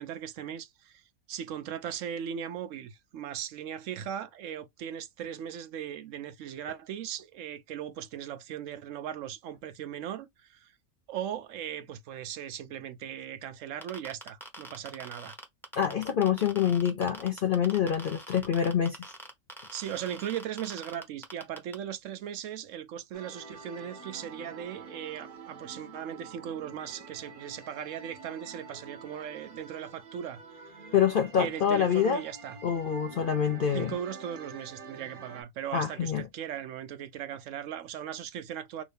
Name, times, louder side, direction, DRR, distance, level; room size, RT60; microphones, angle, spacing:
voice 1, 0.0-10.7 11.1-15.4 19.7-30.4 30.7-30.8 31.4-32.6 33.7-38.8, right 9 dB, 70° right, 0.9 m, -38 dB
sound 1, 13.8-21.7, equal, ahead, 0.7 m, -44 dB
voice 2, 15.7-19.1 30.9-32.2 32.6-34.0 35.7-36.3, left 8 dB, 65° left, 0.5 m, -26 dB
sound 2, 23.1-35.4, right 4 dB, 45° right, 0.8 m, -47 dB
3.1 x 2.6 x 3.3 m
omnidirectional pair, 1.4 m